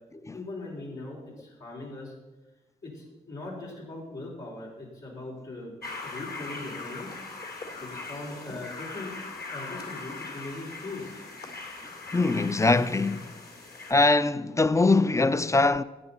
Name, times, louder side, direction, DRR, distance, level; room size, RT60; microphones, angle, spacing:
voice 1, 0.3-2.1 2.8-5.7 6.0-7.1 7.8-9.1 9.5-11.1, left 2 dB, 75° left, 4.4 m, -40 dB
sound 1, 5.8-13.9, left 3 dB, 55° left, 2.6 m, -40 dB
voice 2, 12.1-13.3 13.9-15.8, left 3 dB, 15° left, 0.6 m, -22 dB
14.0 x 8.7 x 4.3 m
supercardioid pair, 45°, 18 cm